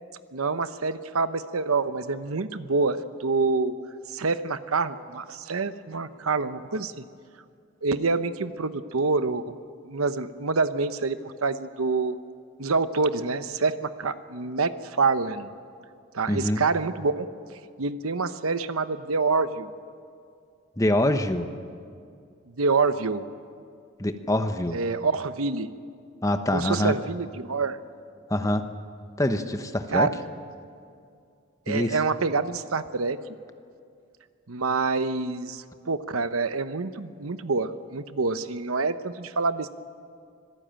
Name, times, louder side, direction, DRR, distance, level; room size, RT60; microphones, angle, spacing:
voice 1, 0.3-3.7 4.1-7.0 7.8-9.4 9.8-12.2 12.6-15.5 16.1-17.3 17.8-19.7 22.6-23.3 24.7-25.7 26.5-27.8 29.9-30.1 31.7-33.2 34.5-39.7, right 4 dB, 90° right, 12 dB, 0.9 m, -26 dB
voice 2, 16.3-16.6 20.8-21.5 24.0-24.8 26.2-26.9 28.3-28.7 29.2-30.1 31.7-32.0, left 1 dB, 15° left, 8 dB, 1.0 m, -25 dB
25.0 x 15.5 x 8.9 m, 2.3 s
head